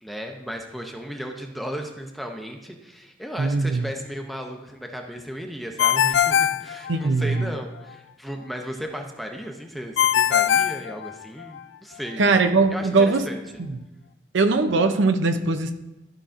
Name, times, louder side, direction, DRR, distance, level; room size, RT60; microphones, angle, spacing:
voice 1, 0.0-12.3 12.7-13.6, equal, ahead, 3 dB, 0.6 m, -35 dB
voice 2, 3.4-3.8 6.9-7.5 12.2-13.3 14.3-15.7, right 3 dB, 70° right, 7 dB, 0.6 m, -20 dB
Ringtone, 5.8-7.4 10.0-11.6, left 10 dB, 60° left, 0.3 m, -21 dB
13.0 x 5.6 x 2.5 m, 1.0 s
head